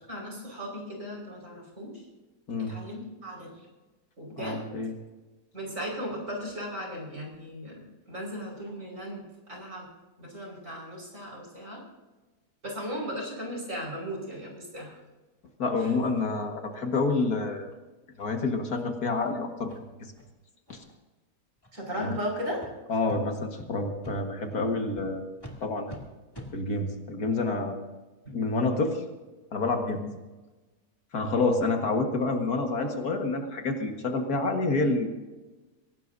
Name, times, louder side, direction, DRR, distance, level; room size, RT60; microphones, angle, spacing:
voice 1, 0.1-2.1 2.6-3.7 4.2-4.8 5.5-9.9 10.2-11.8 12.6-14.9 15.8-15.9 21.7-22.6 28.3-28.4 29.8-30.1, equal, 50° right, -1 dB, 5.6 m, -37 dB
voice 2, 4.4-4.9 15.6-17.7 18.2-19.7 20.7-20.8 22.0-22.1 22.9-25.3 25.6-26.0 26.5-27.8 28.3-29.0 29.5-30.0 31.1-35.1, left 3 dB, 70° left, 3 dB, 2.2 m, -28 dB
sound 1, 16.2-16.3 16.7-16.8 17.2-17.3 17.7-17.8 18.2-18.3 18.7-18.8 19.2-19.3 19.7-19.8 20.2-20.3 20.7-21.0 21.6-21.7 22.1-22.2 22.6-22.7 23.1-23.2 23.6-23.7 24.0-24.2 24.5-24.6 25.0-25.1 25.4-25.6 25.9-26.0 26.3-26.5, equal, 15° left, 2.6 m, -45 dB
23.0 x 17.5 x 2.7 m, 1.2 s
omnidirectional pair, 1.7 m